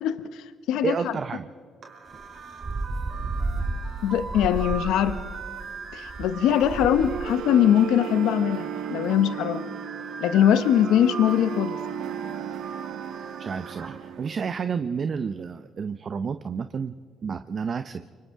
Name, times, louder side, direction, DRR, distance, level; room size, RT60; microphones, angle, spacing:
voice 1, 0.0-0.9 4.0-5.2 5.9-9.6 10.2-11.8, left 10 dB, 90° left, 12 dB, 0.9 m, -22 dB
voice 2, 0.8-1.5 13.4-17.0 17.2-18.0, right 6 dB, 50° right, 10 dB, 0.7 m, -30 dB
sound 1, 1.8-13.9, right 5 dB, 65° right, 3.4 m, -41 dB
sound 2, 2.1-7.3, right 3 dB, 30° right, 1.7 m, -32 dB
sound 3, 6.5-14.5, right 8 dB, 80° right, 0.9 m, -35 dB
29.5 x 24.5 x 3.7 m, 2.1 s
cardioid pair, 90°, 0 cm